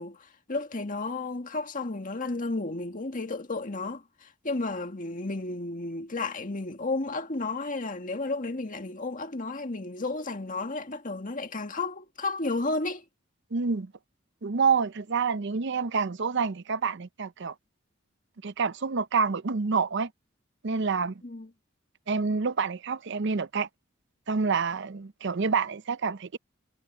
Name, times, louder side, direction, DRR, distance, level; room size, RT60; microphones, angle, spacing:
voice 1, 0.0-13.1 21.2-21.5, left 3 dB, 45° left, 1.9 m, -32 dB
voice 2, 13.5-13.9 14.4-17.5 18.4-20.1 20.6-21.2 22.1-23.7 24.3-26.4, right 5 dB, 65° right, 0.7 m, -27 dB
head